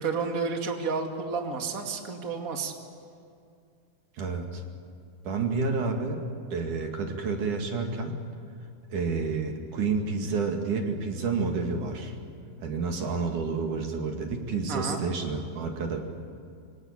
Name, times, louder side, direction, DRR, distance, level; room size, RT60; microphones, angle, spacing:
voice 1, 0.0-2.7 14.7-15.0, right 4 dB, 25° right, 3 dB, 2.2 m, -31 dB
voice 2, 4.2-4.6 5.3-6.2 6.5-8.2 8.9-12.1 12.6-16.0, right 4 dB, 55° right, 3 dB, 3.5 m, -29 dB
26.5 x 25.0 x 8.8 m, 2.4 s
omnidirectional pair, 4.4 m